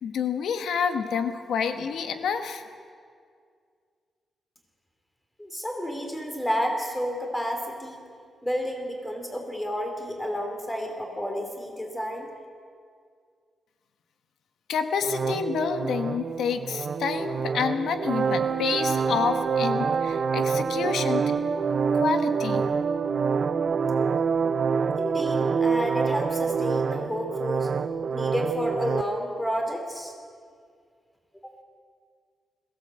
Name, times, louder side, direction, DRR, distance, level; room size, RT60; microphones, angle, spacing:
voice 1, 0.0-2.6 14.7-21.2 21.9-22.6, left 6 dB, 90° left, 8 dB, 1.3 m, -28 dB
voice 2, 5.4-8.0 8.4-12.3 25.0-27.7 28.1-30.1 31.4-31.5, equal, 10° left, 3 dB, 3.4 m, -30 dB
sound 1, 15.0-29.0, right 5 dB, 50° right, 0.7 m, -26 dB
21.5 x 16.5 x 7.8 m, 2.1 s
wide cardioid pair, 140°, 0 cm